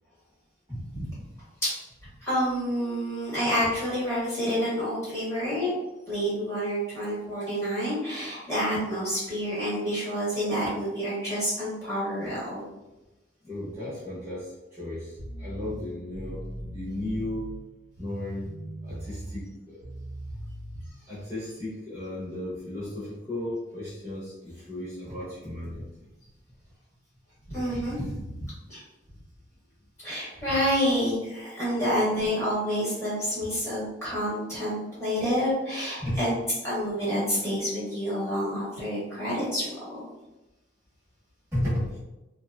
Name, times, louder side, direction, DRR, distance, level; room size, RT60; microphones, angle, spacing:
voice 1, 0.7-1.0 12.2-12.4 13.4-17.5 18.0-18.5 18.8-19.8 21.1-26.1 36.0-36.2 41.5-42.0, left 1 dB, 15° right, -11 dB, 0.8 m, -34 dB
voice 2, 2.2-5.7 6.1-12.7 27.5-28.2 28.7-28.8 30.0-36.3 36.6-40.0, equal, 15° left, -9 dB, 1.2 m, -28 dB
sound 1, 15.2-20.9, right 1 dB, 85° right, 0.6 m, -40 dB
2.7 x 2.2 x 2.3 m, 1.0 s
head